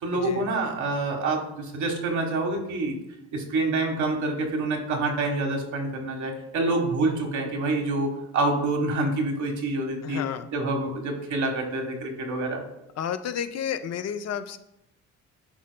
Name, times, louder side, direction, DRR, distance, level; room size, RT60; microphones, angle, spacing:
voice 1, 0.0-3.0 3.3-10.2 10.5-12.6, right 2 dB, 75° right, 2 dB, 1.4 m, -27 dB
voice 2, 10.0-10.5 13.0-14.6, left 8 dB, 60° left, 10 dB, 0.5 m, -31 dB
11.5 x 4.2 x 2.2 m, 0.85 s
cardioid pair, 90°, 30 cm